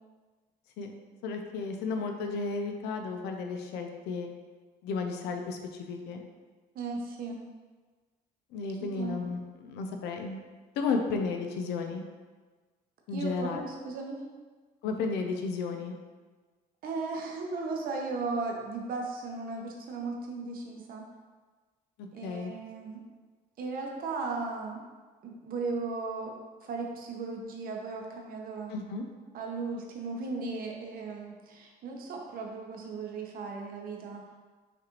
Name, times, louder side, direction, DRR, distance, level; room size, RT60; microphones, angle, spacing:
voice 1, 1.2-4.3 4.8-6.2 8.5-10.4 10.8-12.0 13.1-13.6 14.8-16.0 22.2-22.5 28.7-29.0, left 4 dB, 85° left, 4 dB, 0.5 m, -33 dB
voice 2, 6.7-7.4 8.9-9.1 13.1-14.2 16.8-21.0 22.1-23.0 23.6-24.8 25.2-26.3 26.6-28.7 29.3-34.2, right 3 dB, 60° right, 1 dB, 0.8 m, -36 dB
5.8 x 2.5 x 2.9 m, 1.4 s
cardioid pair, 110°, 17 cm